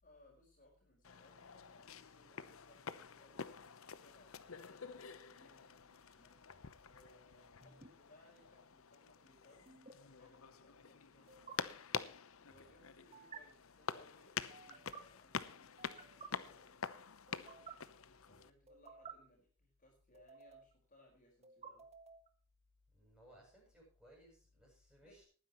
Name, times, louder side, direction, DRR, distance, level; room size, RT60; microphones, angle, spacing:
voice 1, 0.0-3.5 4.0-11.8 12.4-17.0 17.7-21.9 25.0-25.2, left 1 dB, 40° left, -1 dB, 4.8 m, -67 dB
sound 1, 1.0-18.5, left 6 dB, 70° left, 0.8 m, -48 dB
sound 2, 7.6-7.9 9.6-9.9 11.3-11.5 13.1-13.4 14.5-15.0 15.8-16.3 17.3-17.7 18.7-19.1 20.1-20.7 21.4-22.3, right 5 dB, 30° right, 1.4 m, -54 dB
voice 2, 22.9-25.2, equal, 5° right, -2 dB, 7.7 m, -64 dB
19.5 x 10.0 x 3.1 m, 0.40 s
head